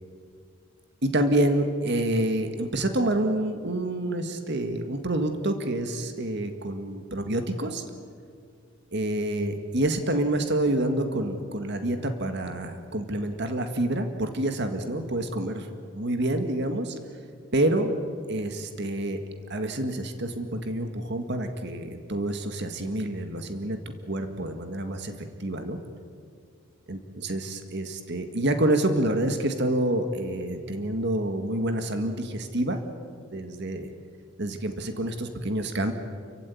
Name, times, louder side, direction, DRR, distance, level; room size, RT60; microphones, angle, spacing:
voice 1, 1.0-7.8 8.9-15.7 15.9-17.0 17.5-17.9 18.3-19.2 19.5-25.1 25.4-25.8 26.9-32.8 33.3-33.9 34.4-35.9, right 1 dB, 55° right, 7 dB, 1.9 m, -27 dB
29.5 x 15.5 x 9.4 m, 2.2 s
head